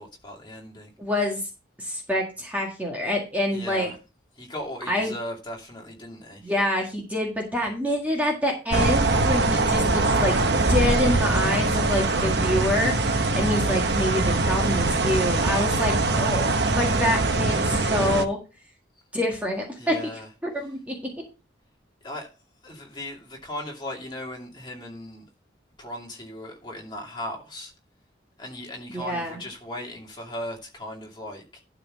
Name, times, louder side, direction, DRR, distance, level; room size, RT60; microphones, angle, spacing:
voice 1, 0.0-0.9 3.5-4.0 4.4-6.5 19.8-20.3 22.0-22.3 22.6-25.2 25.8-27.7 28.4-31.4, left 1 dB, 25° left, 2.6 m, -37 dB
voice 2, 1.0-1.4 1.8-3.9 4.9-5.1 6.4-18.4 19.1-19.9 20.4-21.0 28.9-29.4, left 1 dB, 10° right, 1.8 m, -26 dB
sound 1, 8.7-18.2, right 2 dB, 60° right, 1.0 m, -22 dB
12.0 x 4.0 x 6.5 m
head